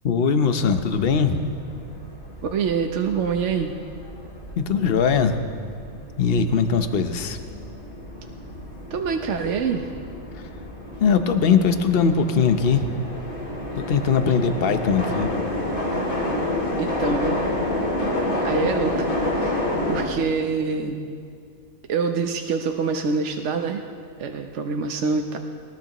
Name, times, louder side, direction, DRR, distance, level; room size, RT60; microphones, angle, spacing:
voice 1, 0.0-1.4 4.6-5.4 6.2-7.4 10.3-10.4 11.0-12.9 13.8-15.3, left 6 dB, 50° left, 8 dB, 1.0 m, -20 dB
sound 1, 0.5-20.1, left 1 dB, 90° left, 3.0 m, -30 dB
voice 2, 2.5-3.8 8.9-9.9 14.2-14.3 16.8-17.4 18.4-21.1 21.9-23.8 24.2-25.4, right 5 dB, 65° right, 4 dB, 1.1 m, -26 dB
21.0 x 20.0 x 3.0 m, 2.3 s
omnidirectional pair, 1.4 m